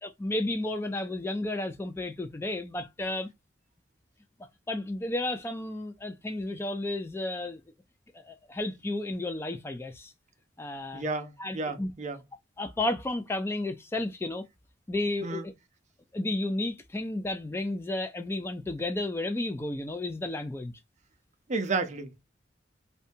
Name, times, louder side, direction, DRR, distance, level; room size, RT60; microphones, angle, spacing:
voice 1, 0.0-3.3 4.7-7.6 8.1-10.1 10.6-11.0 11.4-11.9 12.6-14.5 14.9-15.5 16.1-20.7, left 2 dB, 15° left, 0.3 m, -32 dB
voice 2, 10.9-12.2 15.2-15.5 21.5-22.2, right 3 dB, 40° right, 0.5 m, -32 dB
2.7 x 2.2 x 2.5 m
head